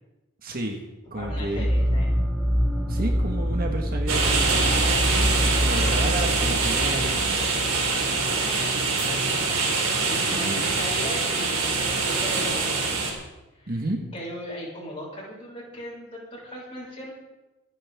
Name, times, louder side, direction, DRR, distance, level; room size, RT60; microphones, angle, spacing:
voice 1, 0.4-0.8 1.1-1.7 2.9-4.9 5.6-7.4 10.2-10.6 13.7-14.0, right 2 dB, 45° right, 2 dB, 1.6 m, -31 dB
voice 2, 1.1-2.1 7.9-13.0 13.5-13.7 14.1-17.1, equal, 25° left, -6 dB, 5.9 m, -38 dB
sound 1, 1.2-8.5, equal, 5° right, 1.3 m, -26 dB
sound 2, 4.1-13.1, right 4 dB, 65° right, 4.2 m, -24 dB
26.5 x 9.7 x 3.7 m, 1.0 s
head